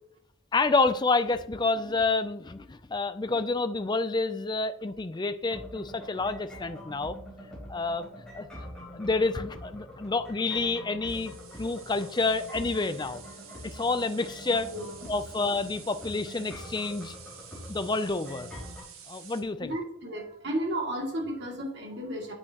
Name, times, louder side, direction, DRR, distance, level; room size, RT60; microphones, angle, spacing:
voice 1, 0.5-7.2 7.7-8.0 8.3-8.5 8.9-11.3 11.6-13.2 13.6-14.7 15.1-17.1 17.7-18.5 19.1-19.7, left 3 dB, 20° left, 10 dB, 0.4 m, -28 dB
sound 1, 5.4-18.8, equal, 5° left, 3.7 m, -45 dB
sound 2, 11.1-19.4, right 7 dB, 75° right, 1.5 m, -50 dB
voice 2, 19.6-22.3, right 1 dB, 50° right, -1 dB, 2.5 m, -33 dB
8.9 x 8.4 x 3.0 m, 0.67 s
head